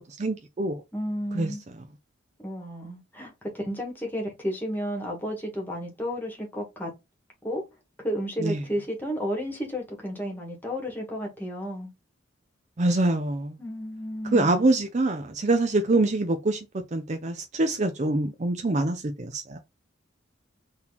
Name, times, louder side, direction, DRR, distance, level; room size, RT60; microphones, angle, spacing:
voice 1, 0.0-0.8 1.3-1.5 8.4-8.6 12.8-13.6 14.3-19.6, right 2 dB, 35° right, 0.5 m, -25 dB
voice 2, 0.9-1.6 2.4-6.9 7.4-7.6 8.0-11.9 13.6-14.6, equal, 10° left, 1.4 m, -32 dB
3.8 x 2.9 x 3.9 m
head